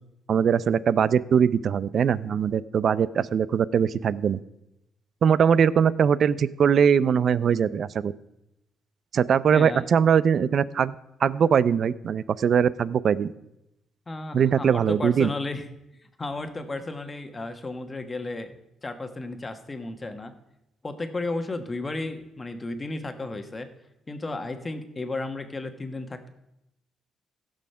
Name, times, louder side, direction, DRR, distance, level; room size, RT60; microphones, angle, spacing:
voice 1, 0.3-4.4 5.2-8.1 9.1-10.9 11.2-13.3 14.3-15.3, right 7 dB, 55° right, 18 dB, 0.5 m, -21 dB
voice 2, 9.5-9.8 14.1-15.6 16.2-18.6 18.8-20.3 20.8-23.7 24.1-26.3, left 2 dB, 25° left, 7 dB, 1.4 m, -33 dB
15.5 x 6.4 x 5.6 m, 0.86 s
cardioid pair, 90°, 0 cm